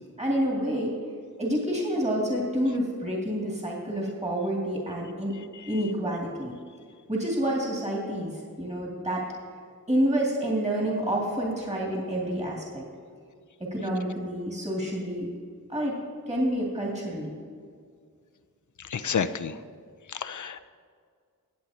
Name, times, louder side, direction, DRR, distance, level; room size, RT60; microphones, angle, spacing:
voice 1, 0.2-1.0 1.4-5.3 5.7-6.5 7.1-9.2 9.9-12.9 13.6-15.3 15.7-16.0 16.3-17.4, equal, 20° right, -3 dB, 2.4 m, -28 dB
voice 2, 18.8-19.6 20.1-20.6, left 7 dB, 55° left, 11 dB, 0.6 m, -30 dB
18.0 x 7.7 x 2.8 m, 2.1 s
cardioid pair, 40°, 35 cm